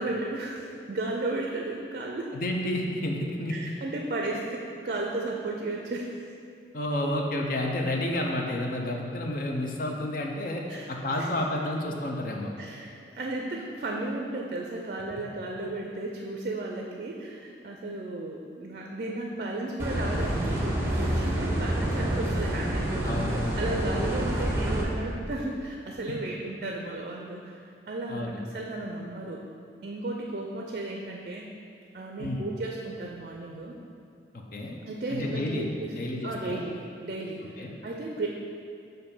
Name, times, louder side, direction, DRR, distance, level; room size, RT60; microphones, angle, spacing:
voice 1, 0.0-2.3 3.5-6.1 10.7-10.9 11.2-11.3 12.6-23.2 23.6-27.6 27.9-29.4 29.8-31.5 31.9-33.7 34.8-35.9 36.2-37.4 37.8-38.3, right 2 dB, 50° right, 0 dB, 0.4 m, -34 dB
voice 2, 2.3-3.7 6.7-12.5 23.0-23.4 26.1-26.2 28.1-28.4 32.2-32.5 34.3-34.8 35.1-36.6 37.6-37.7, left 1 dB, 50° left, 1 dB, 0.6 m, -30 dB
sound 1, 19.8-24.8, right 1 dB, 15° right, 0.7 m, -28 dB
6.7 x 2.6 x 5.4 m, 2.4 s
head